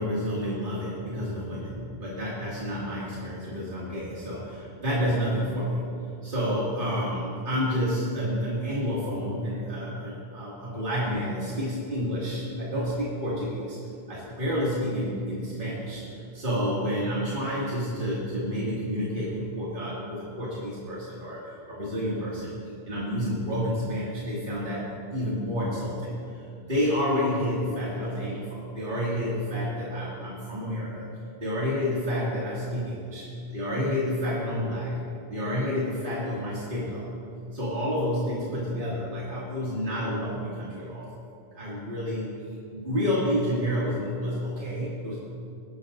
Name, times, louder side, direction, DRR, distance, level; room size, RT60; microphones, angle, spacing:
voice 1, 0.0-5.8 6.2-13.8 14.1-16.0 16.3-22.5 22.9-31.1 31.4-33.3 33.5-35.0 35.3-37.1 37.5-41.1 41.5-42.3 42.7-45.2, equal, 50° right, -8 dB, 2.5 m, -29 dB
20.0 x 12.0 x 2.6 m, 2.5 s
omnidirectional pair, 1.1 m